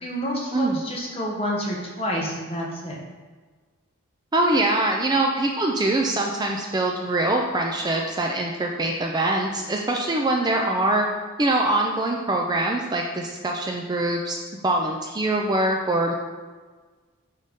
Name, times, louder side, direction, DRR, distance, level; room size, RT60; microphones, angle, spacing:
voice 1, 0.0-3.0, equal, 25° left, -2 dB, 1.1 m, -29 dB
voice 2, 4.3-11.1 11.4-14.4 14.6-16.1, right 2 dB, 20° right, 1 dB, 0.4 m, -23 dB
9.3 x 3.9 x 3.6 m, 1.4 s
head